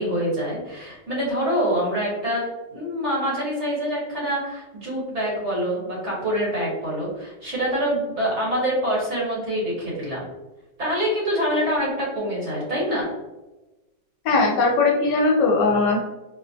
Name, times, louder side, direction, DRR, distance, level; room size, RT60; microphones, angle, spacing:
voice 1, 0.0-2.4 2.7-10.2 10.8-13.1, equal, 45° right, -6 dB, 1.2 m, -25 dB
voice 2, 14.2-16.1, left 3 dB, 70° left, 0 dB, 1.2 m, -19 dB
4.3 x 2.1 x 2.6 m, 1.1 s
omnidirectional pair, 2.0 m